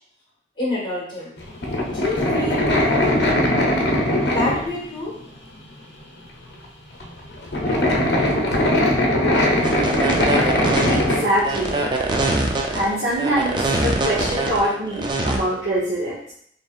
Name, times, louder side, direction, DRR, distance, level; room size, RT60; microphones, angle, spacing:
voice 1, 0.6-1.3 1.9-3.3 4.2-5.2, left 2 dB, 25° left, -4 dB, 1.5 m, -27 dB
sound 1, 1.4-4.9 5.4-5.5 6.6-6.7 7.0-11.2, left 1 dB, 65° left, 0.7 m, -20 dB
sound 2, 9.6-15.4, right 2 dB, 25° right, 0.4 m, -23 dB
voice 2, 10.9-11.8 12.7-16.3, right 1 dB, 75° right, -8 dB, 0.9 m, -24 dB
4.2 x 3.3 x 2.5 m, 0.67 s
head